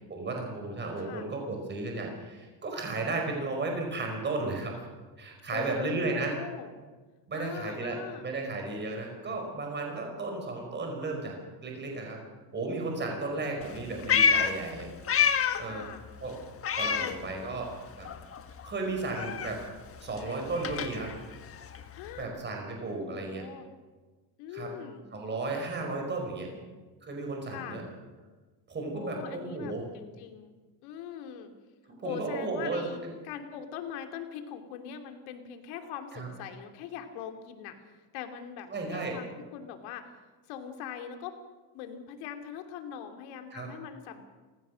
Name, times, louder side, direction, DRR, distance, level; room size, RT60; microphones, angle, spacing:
voice 1, 0.1-4.8 5.2-6.3 7.3-11.4 11.6-12.2 12.5-14.9 15.6-15.9 16.2-16.4 16.8-18.1 18.6-19.6 20.0-21.1 22.2-23.4 24.5-24.7 25.1-26.5 27.0-27.8 28.7-29.9 31.9-33.1 36.1-36.3 38.7-39.2 43.5-43.7, right 3 dB, 20° right, 2 dB, 5.0 m, -34 dB
voice 2, 5.5-6.7 7.3-8.2 13.2-13.7 15.6-16.0 16.8-17.7 21.9-22.3 23.0-23.7 24.4-25.0 25.8-26.7 27.4-27.8 28.9-30.5 30.8-31.5 32.0-33.0 33.2-40.1 40.5-41.4 41.7-44.2, left 8 dB, 90° left, 6 dB, 3.0 m, -42 dB
Meow, 13.6-15.8 16.1-17.8 18.0-22.2, left 7 dB, 30° left, 1.4 m, -29 dB
28.5 x 16.5 x 6.4 m, 1.3 s
cardioid pair, 150°, 48 cm